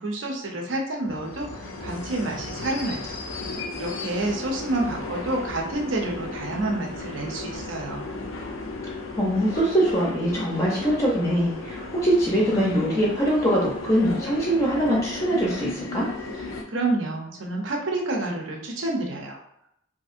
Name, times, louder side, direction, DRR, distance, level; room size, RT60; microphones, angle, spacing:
voice 1, 0.0-3.2 3.8-8.1 16.7-19.4, right 2 dB, 75° right, 0 dB, 0.7 m, -29 dB
sound 1, 1.0-16.6, left 2 dB, 85° left, 0.5 m, -35 dB
voice 2, 9.2-16.1, right 1 dB, 15° left, -4 dB, 0.5 m, -23 dB
2.9 x 2.7 x 2.4 m, 0.76 s
head